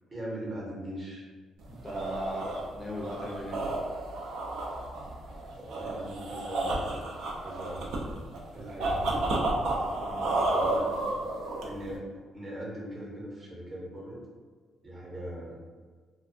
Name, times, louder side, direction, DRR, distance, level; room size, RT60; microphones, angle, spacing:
voice 1, 0.1-1.3 5.6-6.9 7.4-8.1 8.5-9.4 10.4-11.0 11.6-12.1 12.3-14.2 14.8-15.6, right 1 dB, 35° right, -3 dB, 0.8 m, -39 dB
sound 1, 1.6-12.0, right 2 dB, 80° right, 0.4 m, -32 dB
voice 2, 1.7-3.6 10.0-10.2, equal, 20° left, -3 dB, 0.5 m, -38 dB
2.4 x 2.2 x 2.6 m, 1.5 s
cardioid pair, 90°, 0 cm